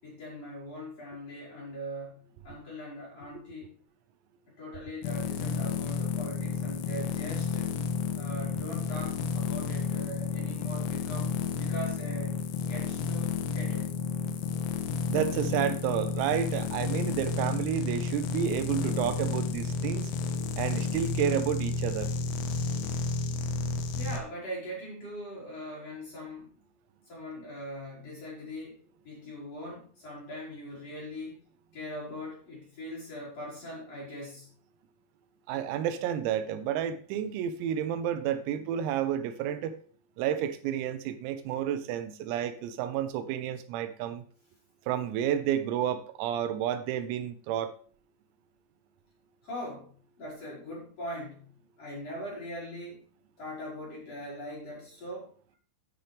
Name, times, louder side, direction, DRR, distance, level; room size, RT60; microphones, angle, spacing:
voice 1, 0.0-3.7 4.5-7.7 8.1-14.0 24.0-26.5 27.1-28.8 29.0-31.4 31.7-34.5 49.4-49.9 50.2-51.5 51.8-53.0 53.4-55.6, equal, 30° left, -6 dB, 5.7 m, -41 dB
sound 1, 5.0-24.2, left 5 dB, 75° left, 3.4 m, -31 dB
voice 2, 15.1-20.1 20.6-22.1 35.5-39.8 40.2-44.2 44.9-47.8, right 10 dB, 85° right, 11 dB, 3.6 m, -30 dB
10.0 x 9.9 x 3.5 m, 0.43 s
omnidirectional pair, 6.0 m